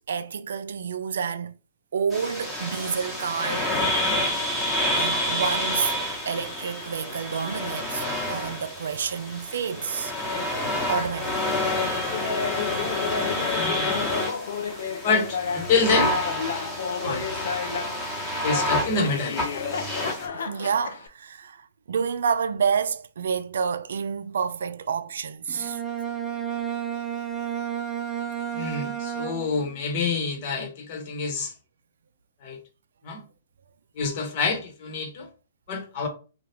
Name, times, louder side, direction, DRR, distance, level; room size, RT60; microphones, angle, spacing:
voice 1, 0.1-1.5 1.9-3.7 5.0-6.0 6.3-10.1 10.9-11.5 17.0-17.2 20.3-25.8, right 6 dB, 75° right, 0.3 m, -29 dB
sound 1, 2.1-20.3, left 1 dB, 10° left, 1.1 m, -28 dB
Laughter, 12.1-18.0 18.5-21.1, left 6 dB, 70° left, 0.5 m, -32 dB
voice 2, 13.5-14.1 15.0-16.1 17.0-17.2 18.4-19.4 28.5-31.5 32.4-32.6 33.0-33.2 34.0-35.3 35.7-36.1, left 4 dB, 45° left, 1.1 m, -27 dB
Bowed string instrument, 25.5-29.7, right 9 dB, 20° right, 0.6 m, -31 dB
2.9 x 2.3 x 3.3 m
hypercardioid pair, 135°, 0 cm